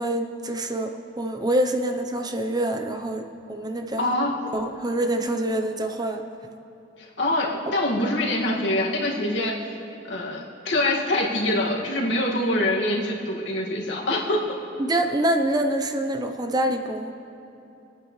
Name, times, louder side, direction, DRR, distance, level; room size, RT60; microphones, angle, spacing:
voice 1, 0.0-4.1 4.5-6.2 14.8-17.1, right 1 dB, 20° right, 4 dB, 0.8 m, -26 dB
voice 2, 4.0-4.4 7.2-9.6 10.0-14.4, left 1 dB, 80° left, -3 dB, 2.2 m, -24 dB
27.0 x 9.1 x 3.3 m, 2.8 s
head